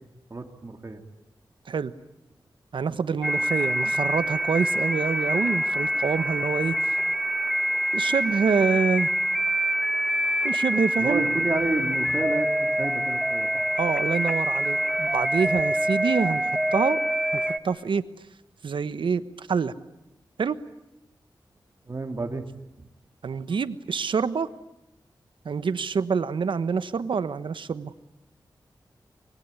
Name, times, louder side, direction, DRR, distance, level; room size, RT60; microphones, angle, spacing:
voice 1, 0.3-1.0 11.0-13.5 21.9-22.5 22.8-22.9, right 3 dB, 35° right, 4 dB, 2.7 m, -30 dB
voice 2, 2.7-7.0 7.9-9.1 10.4-11.2 13.8-17.0 17.3-18.0 18.6-19.7 20.4-20.6 23.2-24.5 25.4-27.9, right 5 dB, 80° right, 13 dB, 1.2 m, -26 dB
sound 1, 3.2-17.6, equal, ahead, 1.5 m, -25 dB
25.5 x 23.0 x 9.9 m, 0.89 s
wide cardioid pair, 95°, 8 cm